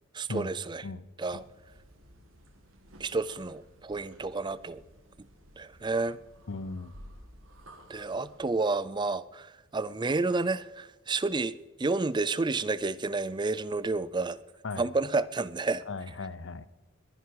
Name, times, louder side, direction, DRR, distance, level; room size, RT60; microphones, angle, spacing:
voice 1, 0.1-0.8 1.2-1.4 3.0-4.8 5.6-6.2 7.9-14.4 14.8-15.8, right 3 dB, 20° right, 0.4 m, -30 dB
sound 1, 1.3-8.5, equal, 85° right, 2.3 m, -54 dB
voice 2, 6.5-6.9 14.6-14.9 15.9-16.7, left 3 dB, 65° left, 0.7 m, -37 dB
21.5 x 10.5 x 4.7 m
head